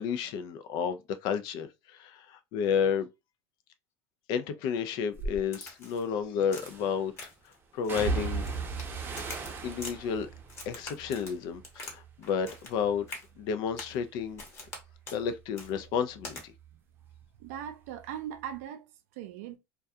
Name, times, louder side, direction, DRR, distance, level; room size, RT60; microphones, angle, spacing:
voice 1, 0.0-3.1 4.3-7.3 7.7-8.5 9.6-10.3 10.7-13.1 13.4-14.4 15.1-16.5, left 7 dB, 60° left, 0.4 m, -31 dB
sound 1, 5.1-5.4 6.6-7.1 7.9-12.1 12.4-13.1 13.4-16.7 17.0-18.1 18.4-18.5, right 4 dB, 25° right, 0.6 m, -38 dB
Crack, 5.5-6.1 6.5-6.8 7.2-7.5 7.8-8.9 9.1-10.0 10.5-12.0 12.2-12.8 13.1-13.3 13.8-14.0 14.4-14.8 15.1-15.2 15.6-15.7 16.2-16.4, left 2 dB, 30° left, 1.1 m, -44 dB
voice 2, 17.4-19.6, right 10 dB, 80° right, 0.5 m, -40 dB
2.3 x 2.2 x 2.6 m
supercardioid pair, 120°, 8 cm